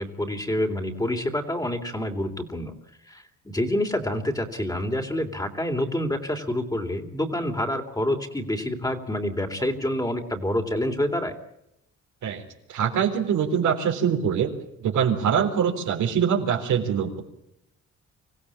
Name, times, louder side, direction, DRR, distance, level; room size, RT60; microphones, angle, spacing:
voice 1, 0.0-2.7 3.0-11.4, left 1 dB, 10° left, 5 dB, 3.3 m, -27 dB
voice 2, 12.7-14.5 14.8-17.2, right 7 dB, 75° right, 3 dB, 4.0 m, -23 dB
25.5 x 16.0 x 8.7 m, 0.82 s
cardioid pair, 90°, 30 cm